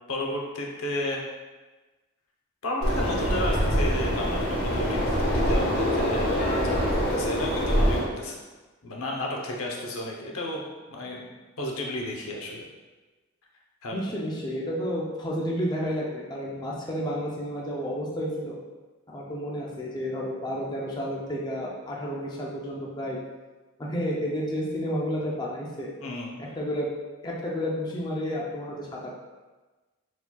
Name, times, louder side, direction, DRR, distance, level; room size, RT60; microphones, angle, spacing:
voice 1, 0.1-1.2 2.6-5.0 5.3-8.4 8.8-12.6 13.8-14.0 26.0-26.4, left 1 dB, 90° left, -1 dB, 0.8 m, -32 dB
sound 1, 2.8-8.0, equal, 60° left, 1.1 m, -25 dB
voice 2, 13.9-18.6 19.1-23.2 23.8-25.9 26.6-26.9 27.2-29.1, equal, 20° left, -4 dB, 0.5 m, -31 dB
4.3 x 4.2 x 2.3 m, 1.2 s
head